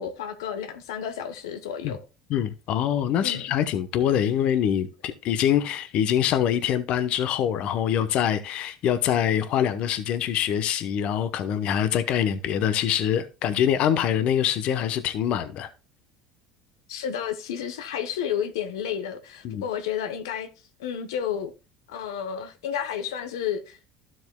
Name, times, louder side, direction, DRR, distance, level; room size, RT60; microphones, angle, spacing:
voice 1, 0.0-2.0 3.2-3.4 16.9-20.5 20.8-21.5 21.9-23.9, left 8 dB, 90° left, 0.9 m, -31 dB
voice 2, 2.3-15.7 19.4-19.6, left 9 dB, 60° left, 0.9 m, -24 dB
12.0 x 7.7 x 2.2 m
supercardioid pair, 95°, 2 cm